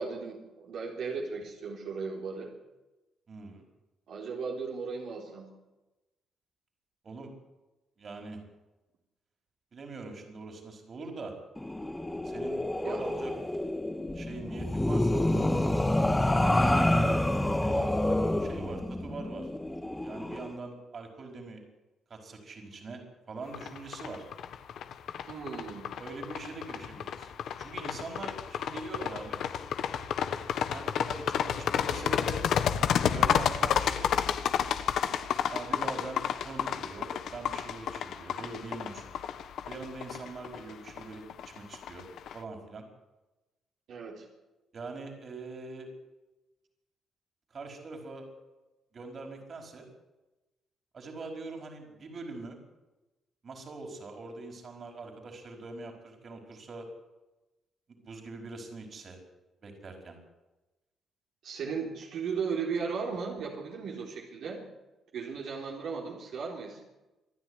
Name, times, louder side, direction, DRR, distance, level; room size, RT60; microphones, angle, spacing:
voice 1, 0.0-2.5 4.1-5.5 12.8-13.0 25.3-25.9 43.9-44.3 61.4-64.6 65.1-66.8, right 5 dB, 75° right, -2 dB, 3.9 m, -36 dB
voice 2, 3.3-3.6 7.0-7.3 8.0-8.4 9.7-11.3 12.2-13.3 14.1-15.3 16.3-16.7 17.6-19.5 20.0-21.6 22.1-23.0 23.3-24.2 26.0-27.3 27.6-29.4 30.7-32.4 33.1-34.1 35.5-39.2 39.7-42.0 42.3-42.8 44.7-45.9 47.5-48.3 48.9-49.9 50.9-52.6 53.4-56.9 58.0-59.2 59.6-60.2, right 3 dB, 45° right, 3 dB, 5.1 m, -43 dB
sound 1, 11.6-20.5, left 1 dB, 10° left, 1.6 m, -28 dB
sound 2, 23.5-42.3, left 9 dB, 70° left, 1.3 m, -31 dB
26.5 x 10.0 x 10.0 m, 1.1 s
cardioid pair, 90°, 0 cm